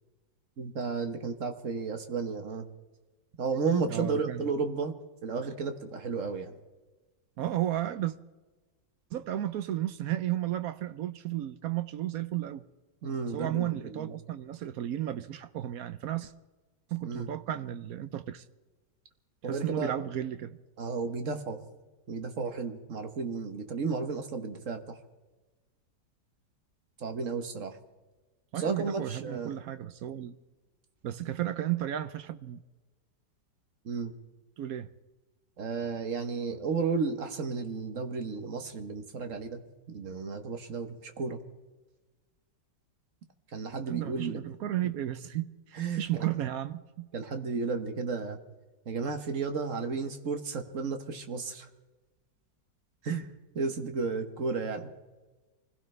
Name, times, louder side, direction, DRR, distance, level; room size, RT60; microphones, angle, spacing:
voice 1, 0.6-2.7 3.4-4.9 5.2-6.5 13.0-14.1 17.0-17.3 19.4-19.9 20.8-21.6 22.1-25.0 27.0-27.8 28.6-29.5 33.8-34.1 35.6-39.6 39.9-41.4 43.5-44.4 45.8-46.0 47.1-48.4 48.9-51.7 53.0-53.3 53.5-54.9, right 4 dB, 50° right, 1.4 m, -33 dB
voice 2, 3.9-4.5 7.4-8.1 9.1-12.6 13.3-16.3 16.9-18.4 19.4-20.6 28.5-30.4 31.0-32.6 34.6-34.9 43.8-47.1, right 12 dB, 65° right, 1.0 m, -33 dB
25.0 x 16.0 x 3.3 m
omnidirectional pair, 1.9 m